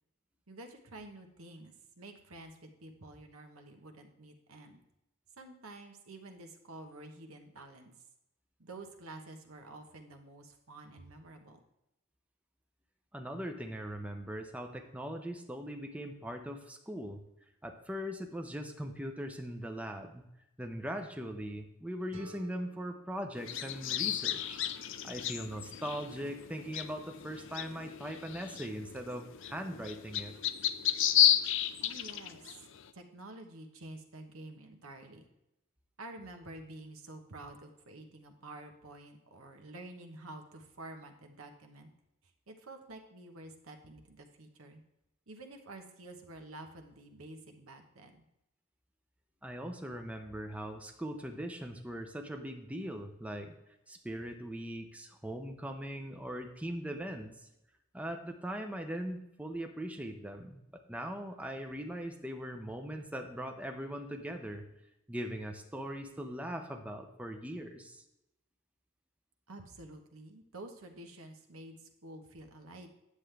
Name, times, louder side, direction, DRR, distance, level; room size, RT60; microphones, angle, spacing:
voice 1, 0.5-4.8 5.4-7.9 8.6-11.6 31.8-32.7 32.9-35.2 36.0-41.9 42.5-44.8 45.3-48.2 69.5-72.9, right 2 dB, 80° right, 5 dB, 1.1 m, -49 dB
voice 2, 13.1-17.2 17.6-20.3 20.6-24.6 25.0-30.3 49.4-53.5 53.9-57.5 57.9-60.6 60.9-64.6 65.1-68.0, equal, 5° right, 4 dB, 0.6 m, -40 dB
sound 1, 22.1-25.0, equal, 60° right, 1.6 m, -55 dB
sound 2, 23.4-32.8, left 11 dB, 60° left, 0.5 m, -32 dB
9.7 x 7.5 x 3.3 m, 0.88 s
head